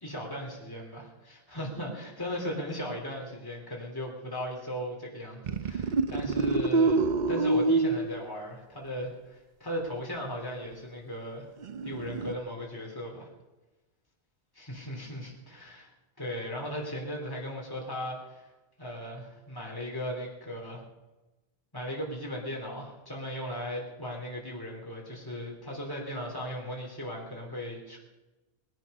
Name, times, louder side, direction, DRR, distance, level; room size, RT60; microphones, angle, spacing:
voice 1, 0.0-11.5 11.8-13.3 14.6-15.9 16.2-18.5 18.8-20.8 21.7-28.0, equal, 20° left, -1 dB, 3.3 m, -37 dB
sound 1, 5.5-8.2 11.6-12.3, right 3 dB, 50° right, 0.8 m, -26 dB
20.5 x 11.0 x 5.4 m, 1.1 s
omnidirectional pair, 1.1 m